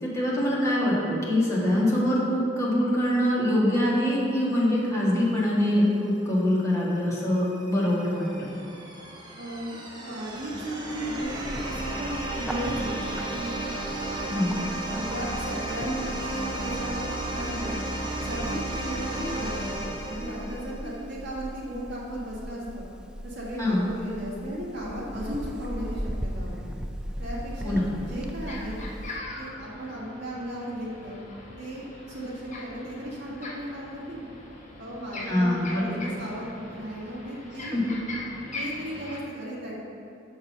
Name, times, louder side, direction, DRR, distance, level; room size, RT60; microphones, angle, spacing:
voice 1, 0.0-8.5 14.3-14.5 23.6-23.8 27.6-27.9 35.3-36.1 37.7-37.9, left 1 dB, 15° left, -7 dB, 1.6 m, -24 dB
sound 1, 7.2-21.0, right 1 dB, 20° right, 0.9 m, -34 dB
voice 2, 9.4-14.5 14.9-17.9 18.2-22.8 23.2-26.7 27.2-28.9 29.4-31.2 31.6-34.3 34.8-37.8 38.5-39.7, equal, 60° right, -7 dB, 1.6 m, -35 dB
Bird, 11.2-29.2, equal, 5° right, 0.3 m, -38 dB
sound 2, 27.6-39.2, left 2 dB, 40° left, 1.0 m, -41 dB
6.4 x 4.6 x 5.7 m, 2.8 s
head